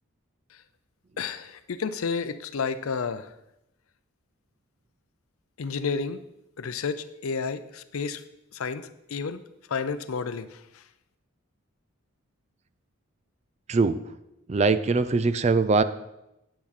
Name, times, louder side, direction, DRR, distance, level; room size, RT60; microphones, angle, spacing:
voice 1, 1.2-3.3 5.6-6.2 6.6-8.2 8.5-9.4 9.7-10.6, left 5 dB, 75° left, 13 dB, 0.5 m, -31 dB
voice 2, 14.5-15.8, right 4 dB, 30° right, 12 dB, 0.4 m, -22 dB
8.7 x 8.5 x 4.1 m, 0.89 s
head